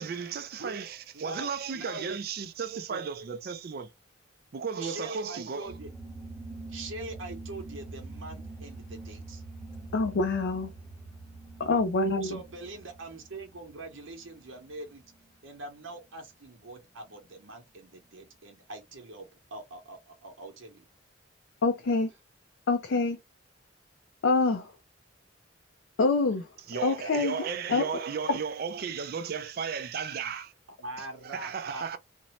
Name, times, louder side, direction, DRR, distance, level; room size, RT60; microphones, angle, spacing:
voice 1, 0.0-3.9 4.5-5.7 26.7-30.5 31.2-32.0, right 6 dB, 45° right, 0.3 m, -35 dB
voice 2, 1.1-2.2 2.9-3.1 4.8-5.9 6.7-9.4 12.2-15.0 15.4-20.9 26.7-27.5 30.8-32.0, right 2 dB, 75° right, 0.8 m, -43 dB
sound 1, 5.6-15.6, right 2 dB, ahead, 0.8 m, -45 dB
voice 3, 9.9-10.7 11.6-12.4 21.6-22.1 22.7-23.2 24.2-24.7 26.0-26.5 26.8-27.4 27.7-27.8, left 3 dB, 65° left, 0.4 m, -25 dB
2.6 x 2.1 x 2.9 m
head